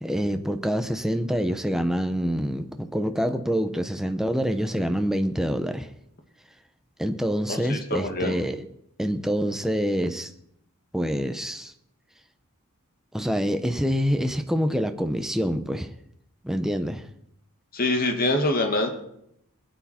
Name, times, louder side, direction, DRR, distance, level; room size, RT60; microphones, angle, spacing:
voice 1, 0.0-5.9 7.0-8.6 9.0-10.3 10.9-11.7 13.1-15.9 16.4-17.0, equal, ahead, 0.8 m, -26 dB
voice 2, 7.5-8.4 17.7-18.9, left 2 dB, 40° left, 1.9 m, -25 dB
21.5 x 9.5 x 4.4 m
head